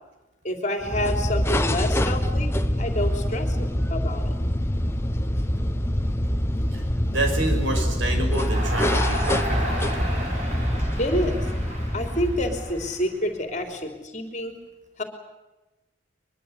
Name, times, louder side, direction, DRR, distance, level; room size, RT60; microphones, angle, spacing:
voice 1, 0.4-2.5 2.8-4.4 11.0-11.4 11.9-14.6 15.0-15.1, left 1 dB, 35° left, 5 dB, 3.5 m, -28 dB
sound 1, 0.8-13.0, equal, 10° left, 1.0 m, -25 dB
voice 2, 7.1-10.2, right 2 dB, 65° right, 5 dB, 6.1 m, -29 dB
Crowd, 8.4-13.6, right 1 dB, 35° right, 6.8 m, -34 dB
23.0 x 23.0 x 8.1 m, 1.1 s
head